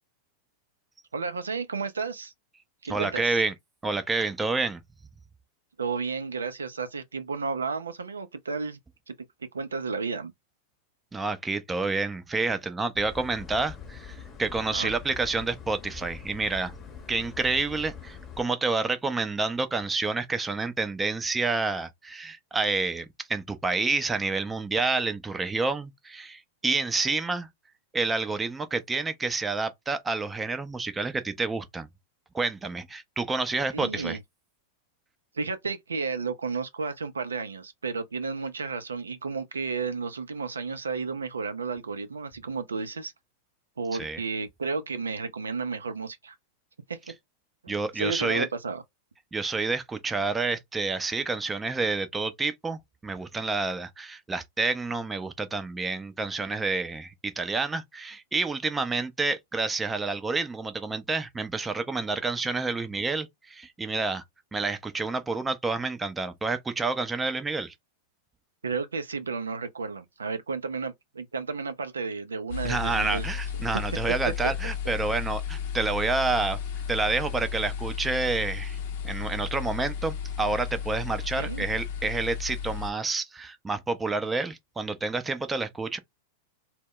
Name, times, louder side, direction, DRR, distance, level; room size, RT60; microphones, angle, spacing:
voice 1, 1.1-2.3 2.8-3.4 5.8-8.8 9.1-9.2 9.5-10.3 14.7-14.9 33.7-34.2 35.3-43.1 43.8-46.4 46.9-47.1 47.6-48.8 68.6-73.3 81.4-81.6, right 4 dB, 90° right, 0.4 m, -32 dB
voice 2, 2.9-3.5 3.8-4.8 11.1-16.7 17.1-27.5 27.9-31.9 32.3-34.2 44.0-44.2 47.7-48.5 49.3-64.2 64.5-67.7 72.6-76.6 76.9-78.8 79.0-86.0, right 3 dB, 15° right, 0.5 m, -29 dB
sound 1, 12.9-18.4, left 7 dB, 25° left, 0.8 m, -43 dB
sound 2, 72.5-82.9, left 7 dB, 60° left, 0.6 m, -33 dB
2.1 x 2.0 x 3.7 m
hypercardioid pair, 105°, 0 cm